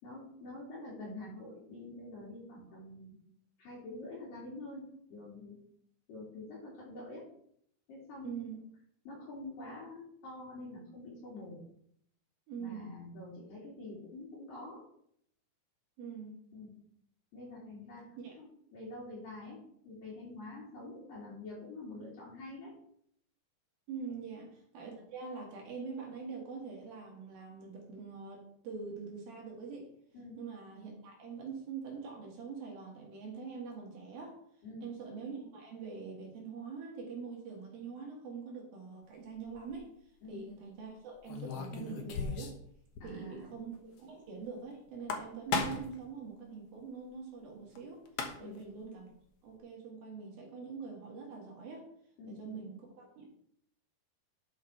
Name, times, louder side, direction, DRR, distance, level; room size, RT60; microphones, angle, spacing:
voice 1, 0.0-3.2 3.6-5.6 6.1-7.3 7.9-8.4 9.1-11.6 12.6-14.8 16.5-16.7 17.3-18.0 18.4-18.5 18.7-19.6 19.9-22.7 24.1-24.3 30.1-30.4 34.6-34.9 40.2-40.4 43.0-43.6 48.4-48.6 52.2-52.7, left 2 dB, 60° left, -6 dB, 4.4 m, -46 dB
voice 2, 8.2-8.6 12.5-12.9 16.0-16.4 18.2-18.4 23.9-29.9 30.4-34.4 34.8-39.9 40.3-42.5 43.0-48.0 48.4-49.1 49.4-51.9 52.3-53.3, right 5 dB, 65° right, -1 dB, 3.7 m, -44 dB
sound 1, 39.4-39.8 41.2-42.7 42.9-43.0 43.4-43.5 44.9-46.0 47.7-47.8 48.0-48.6, left 5 dB, 90° left, 1.3 m, -36 dB
11.5 x 6.1 x 4.5 m, 0.68 s
omnidirectional pair, 4.6 m